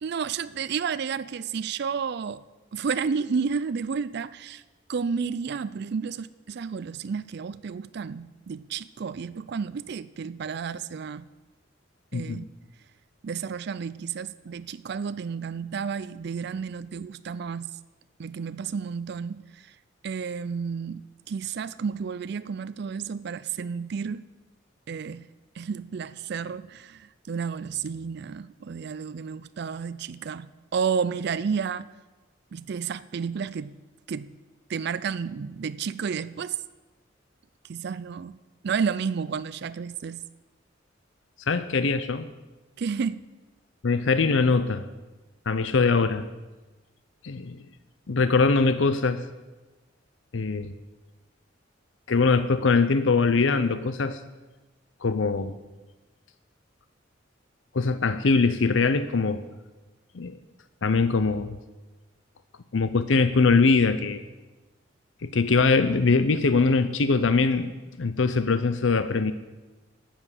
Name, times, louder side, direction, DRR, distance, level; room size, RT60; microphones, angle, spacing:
voice 1, 0.0-2.4 2.7-4.6 4.9-11.2 12.1-12.4 13.2-17.7 18.2-19.7 20.0-24.3 24.9-25.3 25.6-31.9 32.5-33.8 34.1-34.3 34.7-36.6 37.7-38.3 38.6-40.2 42.8-43.2, right 6 dB, 60° right, 15 dB, 0.4 m, -31 dB
voice 2, 12.1-12.4 41.5-42.3 43.8-44.9 45.5-46.3 47.2-47.6 48.1-49.2 50.3-50.7 52.1-54.2 55.0-55.5 57.7-59.4 60.1-60.4 60.8-61.6 62.7-64.2 65.2-69.3, left 4 dB, 80° left, 12 dB, 0.6 m, -22 dB
13.0 x 7.3 x 9.8 m, 1.2 s
head